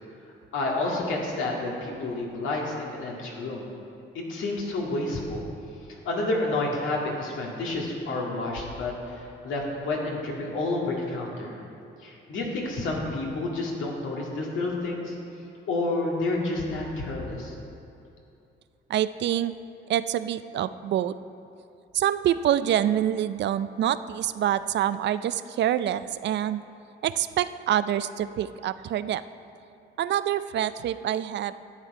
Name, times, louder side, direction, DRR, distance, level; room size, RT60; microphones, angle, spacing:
voice 1, 0.5-3.7 4.1-5.4 6.1-11.6 12.0-15.1 15.7-17.5, left 2 dB, 80° left, -2 dB, 2.1 m, -29 dB
voice 2, 18.9-19.5 19.9-21.1 21.9-26.6 27.0-29.2 30.0-31.5, right 11 dB, 65° right, 14 dB, 0.4 m, -26 dB
11.0 x 8.2 x 4.8 m, 2.7 s
cardioid pair, 90°, 20 cm